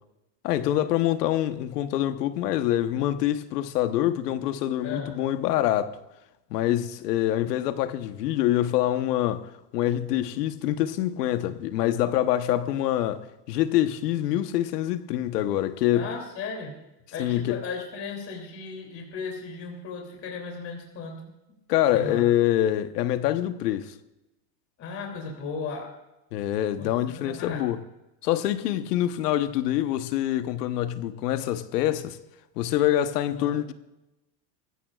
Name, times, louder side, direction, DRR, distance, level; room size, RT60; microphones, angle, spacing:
voice 1, 0.4-6.0 6.5-16.1 17.2-17.6 21.7-23.9 26.3-27.8 28.2-32.2 32.6-33.7, left 12 dB, 90° left, 1.2 m, -25 dB
voice 2, 4.8-5.1 15.9-16.7 17.1-21.3 21.9-22.3 24.8-25.9 26.8-27.6 33.3-33.6, left 4 dB, 30° left, 2.9 m, -36 dB
21.5 x 15.5 x 2.4 m
supercardioid pair, 165°, 46 cm